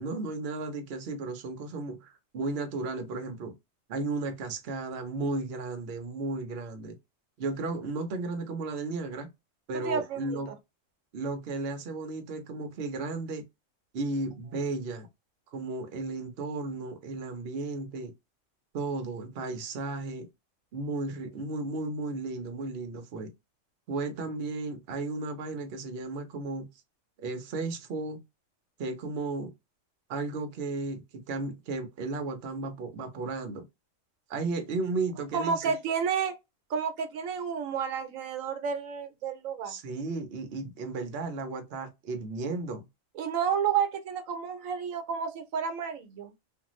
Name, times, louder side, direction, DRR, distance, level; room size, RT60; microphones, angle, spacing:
voice 1, 0.0-3.5 3.9-7.0 7.4-9.3 9.7-10.5 11.1-13.4 13.9-15.1 15.5-18.1 18.7-20.3 20.7-23.3 23.9-26.7 27.2-28.2 28.8-29.5 30.1-33.6 34.3-35.6 39.6-42.8, right 3 dB, 55° right, 0.8 m, -34 dB
voice 2, 9.8-10.4 35.3-36.3 36.7-39.7 43.2-46.3, right 7 dB, 90° right, 1.1 m, -30 dB
2.5 x 2.4 x 3.0 m
omnidirectional pair, 1.3 m